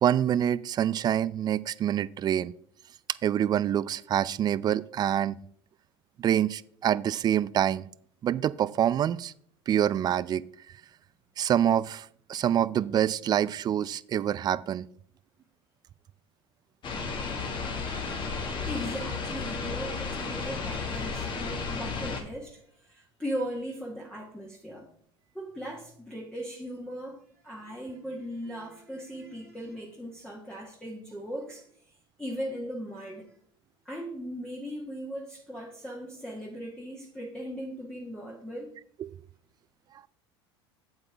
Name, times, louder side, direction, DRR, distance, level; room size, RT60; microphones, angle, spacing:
voice 1, 0.0-2.5 3.2-5.4 6.2-7.8 8.2-9.3 9.7-10.4 11.4-14.9 39.0-39.2, right 10 dB, 30° right, 0.4 m, -26 dB
sound 1, 16.8-22.2, left 4 dB, 35° left, 1.8 m, -33 dB
voice 2, 18.6-24.9 25.3-33.3 33.8-38.7, equal, 5° left, 1.4 m, -38 dB
8.0 x 8.0 x 3.4 m
hypercardioid pair, 90°, 14 cm